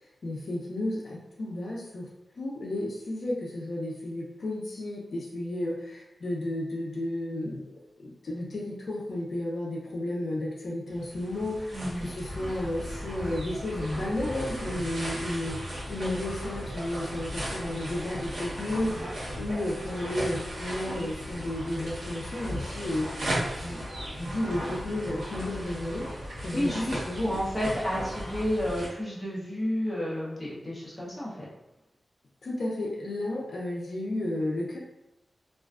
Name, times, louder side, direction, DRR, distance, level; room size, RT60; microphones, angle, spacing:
voice 1, 0.2-2.1 2.4-23.2 23.5-23.8 24.2-26.1 26.4-27.4 32.4-34.8, left 1 dB, 65° left, -3 dB, 0.4 m, -33 dB
sound 1, 10.9-28.9, equal, 70° right, 1.0 m, -36 dB
voice 2, 11.7-12.1 26.5-31.5, equal, 10° left, -7 dB, 0.8 m, -31 dB
2.4 x 2.2 x 2.3 m, 0.88 s
wide cardioid pair, 110°, 0 cm